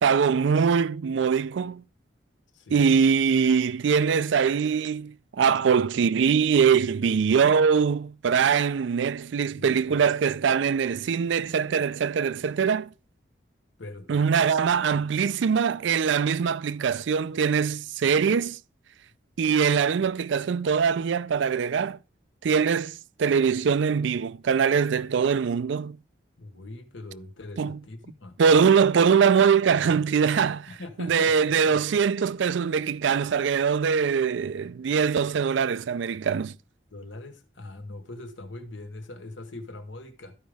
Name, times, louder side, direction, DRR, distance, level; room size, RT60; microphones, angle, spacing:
voice 1, 0.0-1.8 2.7-12.9 14.1-18.6 19.4-22.0 22.4-26.0 27.6-27.8 28.4-30.7 31.0-36.5, right 6 dB, 70° right, 0.4 m, -22 dB
voice 2, 2.5-2.9 9.5-10.0 12.6-12.7 13.8-14.3 14.9-15.0 26.4-28.4 30.7-31.8 36.9-40.4, left 2 dB, 75° left, 1.4 m, -42 dB
13.5 x 5.1 x 3.5 m
head